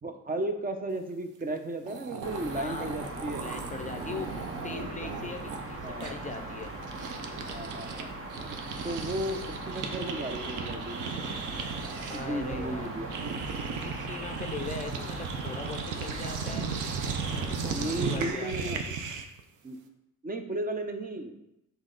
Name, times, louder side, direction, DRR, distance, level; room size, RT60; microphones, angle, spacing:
voice 1, 0.0-3.5 5.8-6.2 7.5-8.1 8.8-9.4 9.7-11.0 12.1-13.1 17.7-18.8 19.6-19.8 20.2-21.4, right 1 dB, 30° right, 6 dB, 0.7 m, -34 dB
sound 1, 1.6-1.7 1.8-8.0 8.3-19.4, right 5 dB, 85° right, 0.7 m, -37 dB
sound 2, 2.2-18.3, right 2 dB, 45° right, 1.0 m, -39 dB
voice 2, 2.5-3.0 3.4-6.7 12.1-12.9 13.8-16.7 17.3-19.0, left 4 dB, 25° left, 5 dB, 0.4 m, -40 dB
6.2 x 4.0 x 3.9 m, 0.88 s
cardioid pair, 90°, 30 cm